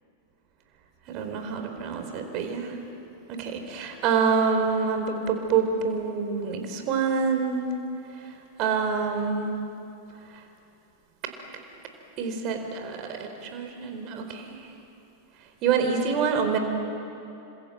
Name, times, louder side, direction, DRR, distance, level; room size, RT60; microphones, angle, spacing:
voice 1, 1.1-2.8 3.3-7.7 8.6-9.6 12.2-14.6 15.6-16.6, right 5 dB, 40° right, 5 dB, 4.4 m, -26 dB
28.5 x 26.0 x 8.0 m, 2.8 s
figure-of-eight pair, 90°, 0 cm